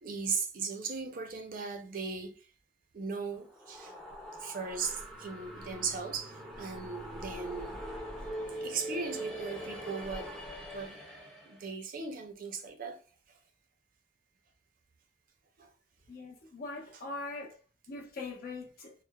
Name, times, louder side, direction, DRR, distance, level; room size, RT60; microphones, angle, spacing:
voice 1, 0.0-2.3 2.9-3.9 4.4-7.8 8.5-10.3 10.7-11.0 11.5-13.0 15.6-15.7, right 5 dB, 50° right, 0.5 m, -37 dB
sound 1, 3.3-11.6, equal, 5° left, 0.5 m, -43 dB
voice 2, 16.1-17.6 17.9-18.9, left 3 dB, 55° left, 0.7 m, -41 dB
2.9 x 2.0 x 2.2 m
head